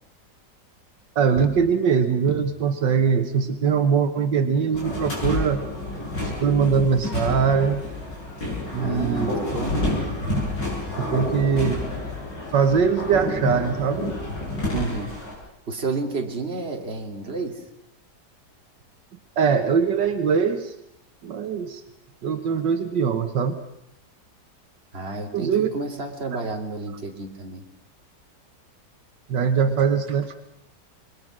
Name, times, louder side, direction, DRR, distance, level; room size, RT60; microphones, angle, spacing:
voice 1, 1.2-5.6 6.2-7.8 8.7-9.3 11.0-11.8 12.5-14.1 19.4-20.7 21.2-21.8 22.2-23.6 25.3-25.7 29.3-30.3, right 6 dB, 80° right, 8 dB, 1.9 m, -22 dB
sound 1, 4.7-15.3, left 1 dB, 75° left, 8.4 m, -29 dB
voice 2, 8.8-9.9 14.7-15.2 15.7-17.6 24.9-27.6, right 3 dB, 35° right, 2 dB, 2.8 m, -31 dB
26.5 x 22.0 x 6.2 m, 0.81 s
omnidirectional pair, 1.9 m